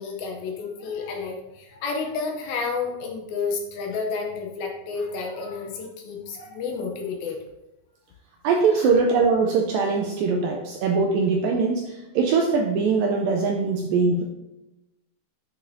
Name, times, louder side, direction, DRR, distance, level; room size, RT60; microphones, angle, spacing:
voice 1, 0.0-7.4 8.7-8.9, left 4 dB, 75° left, 1 dB, 2.4 m, -31 dB
voice 2, 8.4-14.2, right 4 dB, 85° right, 1 dB, 2.1 m, -22 dB
9.0 x 6.4 x 2.7 m, 0.97 s
omnidirectional pair, 4.7 m